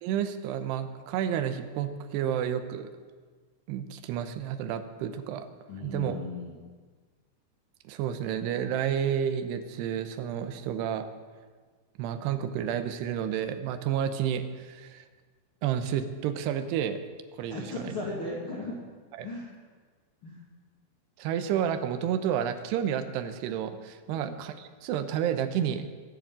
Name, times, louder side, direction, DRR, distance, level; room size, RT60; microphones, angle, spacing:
voice 1, 0.0-2.9 3.7-5.5 5.8-6.2 7.9-11.1 12.0-15.0 15.6-17.0 17.4-17.5 19.2-19.3 21.2-25.9, right 9 dB, 75° right, 9 dB, 2.7 m, -30 dB
voice 2, 5.7-6.6 17.5-18.8 19.2-19.5 20.2-20.4 24.1-24.4, left 2 dB, 40° left, -5 dB, 2.2 m, -37 dB
23.0 x 8.0 x 7.5 m, 1.5 s
omnidirectional pair, 5.4 m